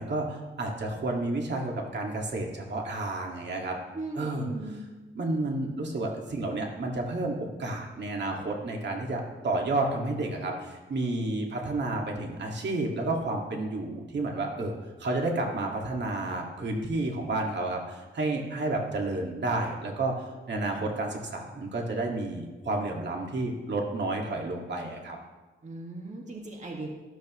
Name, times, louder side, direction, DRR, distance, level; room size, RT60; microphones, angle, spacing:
voice 1, 0.0-3.8 4.2-4.8 5.1-14.7 15.0-25.2, right 2 dB, 55° right, 0 dB, 2.0 m, -31 dB
voice 2, 4.0-4.8 25.6-26.9, right 2 dB, 35° right, 0 dB, 1.9 m, -38 dB
13.5 x 13.0 x 3.1 m, 1.2 s
cardioid pair, 95°, 21 cm